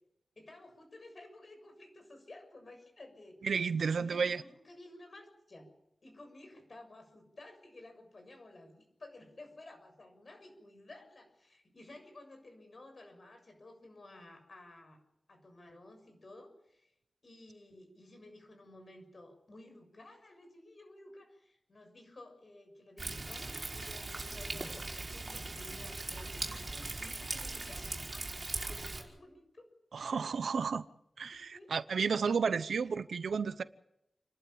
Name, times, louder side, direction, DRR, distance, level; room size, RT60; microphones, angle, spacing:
voice 1, 0.4-3.4 3.7-5.7 6.0-15.0 15.3-16.9 17.2-28.3 28.5-29.7 30.1-30.3 31.3-31.7 32.6-32.7, left 2 dB, 45° left, 6.9 m, -54 dB
voice 2, 3.4-4.4 29.9-30.9 31.2-33.6, right 5 dB, 85° right, 0.8 m, -32 dB
Thunder, 23.0-29.0, right 2 dB, 35° right, 5.1 m, -40 dB
29.5 x 12.0 x 8.7 m
wide cardioid pair, 95°, 0 cm